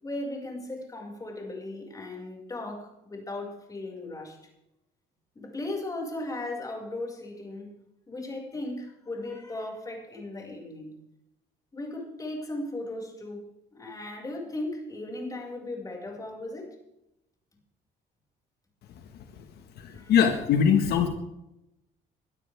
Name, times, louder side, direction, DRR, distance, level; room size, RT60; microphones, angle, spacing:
voice 1, 0.0-4.4 5.4-7.7 8.1-10.9 11.7-13.4 13.7-16.7 19.9-20.1, left 2 dB, 20° left, -1 dB, 5.9 m, -37 dB
voice 2, 19.8-21.1, left 8 dB, 70° left, 5 dB, 1.7 m, -22 dB
22.0 x 13.0 x 3.6 m, 0.89 s
cardioid pair, 110°, 17 cm